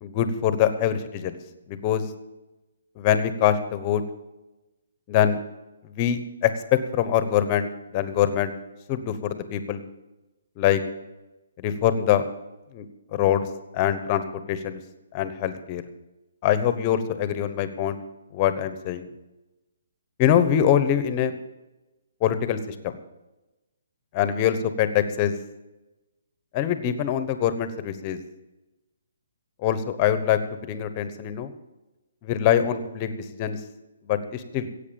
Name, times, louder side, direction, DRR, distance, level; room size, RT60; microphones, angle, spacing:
voice 1, 0.0-1.4 1.7-2.0 3.0-4.0 5.1-5.4 5.8-7.7 7.9-8.5 8.9-9.8 10.6-10.8 11.6-12.2 12.7-12.9 13.1-13.5 13.7-14.2 14.5-14.8 15.1-15.8 16.4-18.0 18.3-19.1 20.2-21.4 22.2-22.9 24.1-25.3 26.5-28.2 29.6-31.5 32.2-33.6 34.1-34.7, left 10 dB, 25° left, 11 dB, 1.1 m, -24 dB
16.0 x 8.4 x 7.1 m, 1.0 s
hypercardioid pair, 165°, 0 cm